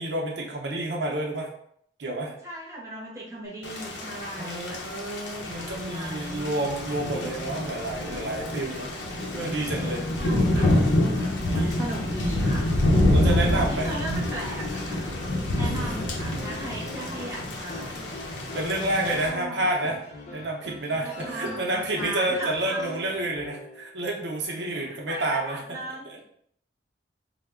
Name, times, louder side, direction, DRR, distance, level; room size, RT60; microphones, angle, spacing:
voice 1, 0.0-1.5 2.0-2.3 4.4-8.9 9.3-10.0 10.5-10.9 11.5-11.7 13.1-13.9 15.6-16.5 18.4-20.0 20.3-25.6 26.1-26.2, right 1 dB, 75° right, -1 dB, 0.6 m, -30 dB
voice 2, 2.4-4.9 5.6-6.7 10.2-10.8 11.1-12.7 13.2-18.0 19.1-19.6 21.0-22.9 24.6-26.2, right 1 dB, 15° right, -5 dB, 0.7 m, -37 dB
Thunder / Rain, 3.6-19.3, left 1 dB, 90° left, 0.7 m, -27 dB
sound 1, 13.5-23.9, left 1 dB, 45° left, 0.5 m, -42 dB
3.2 x 2.1 x 3.5 m, 0.67 s
head